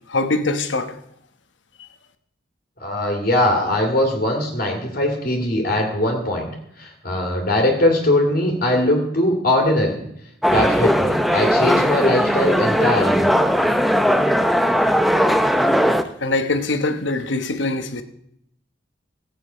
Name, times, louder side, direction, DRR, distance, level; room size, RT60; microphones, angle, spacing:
voice 1, 0.1-0.9 16.2-18.0, left 2 dB, 85° left, 1.1 m, -23 dB
voice 2, 2.8-6.5 6.8-10.0 10.5-13.3, left 1 dB, 55° left, 2.3 m, -20 dB
sound 1, 10.4-16.0, equal, ahead, 0.6 m, -18 dB
16.0 x 8.5 x 5.5 m
head